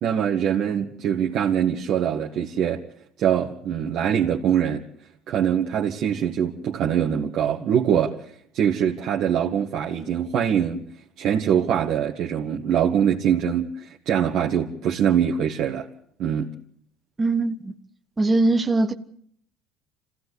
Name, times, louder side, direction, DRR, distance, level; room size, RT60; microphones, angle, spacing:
voice 1, 0.0-2.8 3.2-4.8 5.3-8.2 8.5-10.8 11.2-15.9 16.2-16.5, right 8 dB, 60° right, 1.7 m, -23 dB
voice 2, 17.2-17.7 18.2-18.9, right 2 dB, 20° right, 1.2 m, -21 dB
26.0 x 16.0 x 8.2 m
supercardioid pair, 80°, 0 cm